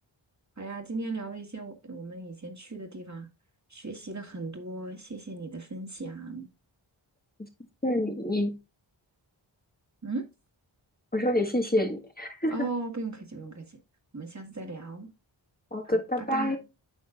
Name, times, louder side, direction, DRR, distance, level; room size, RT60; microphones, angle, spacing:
voice 1, 0.6-3.3 3.7-6.5 10.0-10.2 12.5-13.8 14.1-15.1 15.8-16.6, right 3 dB, 35° right, 2.0 m, -37 dB
voice 2, 7.8-8.6 11.1-12.7 15.7-16.6, left 1 dB, 20° left, 1.5 m, -27 dB
9.6 x 6.3 x 2.4 m
wide cardioid pair, 50°, 48 cm